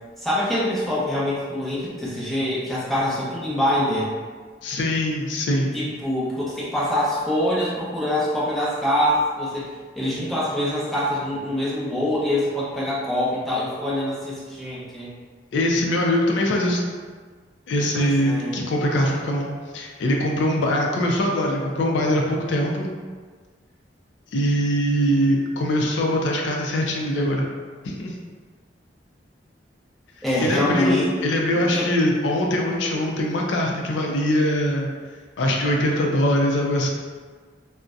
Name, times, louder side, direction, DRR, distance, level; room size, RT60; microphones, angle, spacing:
voice 1, 0.2-4.1 5.7-9.7 10.0-15.1 17.9-18.6 19.0-19.2 30.2-31.1 31.5-31.9, left 1 dB, ahead, -8 dB, 0.5 m, -24 dB
voice 2, 4.6-5.7 15.5-16.8 17.7-19.5 19.7-22.9 24.3-27.5 27.8-28.1 30.4-34.9 35.4-36.9, equal, 90° left, 0 dB, 0.4 m, -22 dB
2.5 x 2.0 x 2.3 m, 1.5 s
head